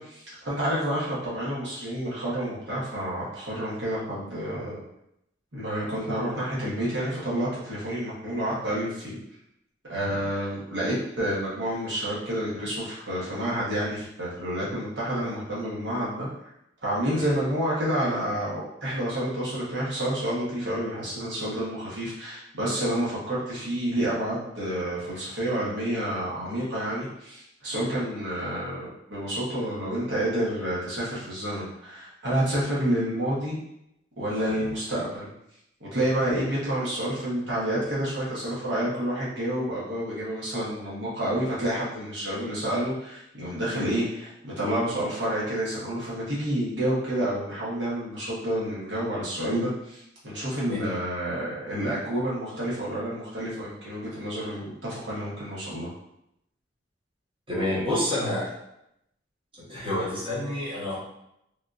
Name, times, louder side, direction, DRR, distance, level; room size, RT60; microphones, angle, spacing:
voice 1, 0.0-4.8 5.5-9.2 9.9-16.3 16.8-33.6 34.2-35.3 35.8-55.9, right 1 dB, 65° right, -7 dB, 1.0 m, -29 dB
voice 2, 57.5-58.5 59.6-61.0, left 1 dB, 30° right, -9 dB, 1.1 m, -29 dB
3.4 x 2.4 x 2.5 m, 0.79 s
head